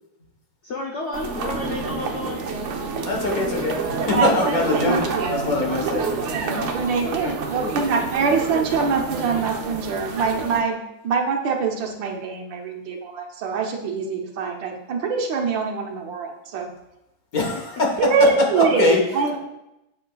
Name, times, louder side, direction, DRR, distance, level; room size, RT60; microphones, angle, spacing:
voice 1, 0.6-2.4 7.0-8.0 18.7-18.8, left 2 dB, 75° left, -1 dB, 0.6 m, -32 dB
sound 1, 1.1-10.6, right 4 dB, 90° right, 0.6 m, -28 dB
voice 2, 3.0-6.1 17.3-18.3 18.6-19.4, left 3 dB, 50° left, 1 dB, 1.6 m, -23 dB
voice 3, 4.1-5.5 6.3-16.7 18.0-19.4, right 5 dB, 70° right, 2 dB, 1.5 m, -24 dB
9.2 x 6.9 x 2.3 m, 0.90 s
omnidirectional pair, 2.2 m